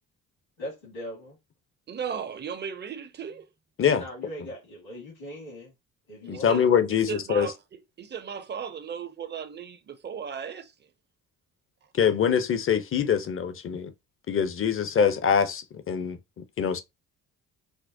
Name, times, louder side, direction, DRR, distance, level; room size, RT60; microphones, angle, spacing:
voice 1, 0.6-1.4 3.8-5.7 6.1-6.7, equal, 70° left, 1.9 m, -40 dB
voice 2, 1.9-3.5 6.2-10.7, right 7 dB, 25° right, 0.6 m, -36 dB
voice 3, 6.3-7.5 12.0-13.9 14.3-16.2 16.6-16.8, left 7 dB, 30° left, 0.6 m, -24 dB
4.4 x 2.0 x 2.7 m
figure-of-eight pair, 40°, 44 cm